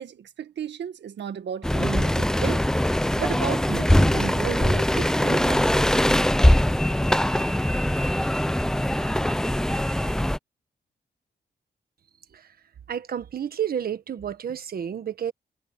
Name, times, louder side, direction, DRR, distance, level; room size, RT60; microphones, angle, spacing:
voice 1, 0.0-2.7 3.1-5.9, right 8 dB, 75° right, 1.7 m, -34 dB
sound 1, 1.6-10.4, left 1 dB, 5° left, 0.5 m, -22 dB
voice 2, 12.9-15.3, right 9 dB, 55° right, 1.3 m, -30 dB
wide cardioid pair, 165°, 18 cm